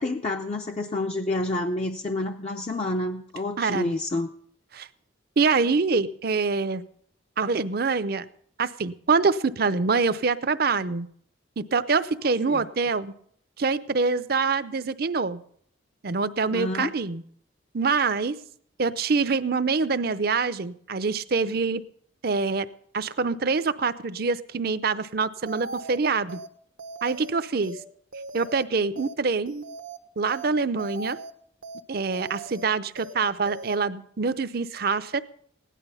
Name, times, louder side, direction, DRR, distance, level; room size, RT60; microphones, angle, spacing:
voice 1, 0.0-4.3 12.5-12.6 16.5-16.9, left 2 dB, 35° left, 3 dB, 0.5 m, -28 dB
voice 2, 3.6-3.9 4.7-4.9 5.4-6.8 7.4-8.2 8.6-11.1 11.6-13.1 13.6-15.4 16.0-17.2 17.7-18.4 18.8-21.8 22.2-22.7 22.9-26.4 27.0-27.8 28.3-29.5 30.2-31.2 31.9-35.2, right 4 dB, 50° right, 14 dB, 0.6 m, -25 dB
sound 1, 25.5-26.0 26.3-26.5 26.8-27.3 27.6-27.8 28.1-28.6 29.0-29.1 29.5-30.0 30.3-30.5 30.8-31.3 31.6-31.8 32.1-32.6 33.0-33.1 33.5-33.8, right 3 dB, 90° right, 1.1 m, -39 dB
16.5 x 11.0 x 5.5 m, 0.65 s
head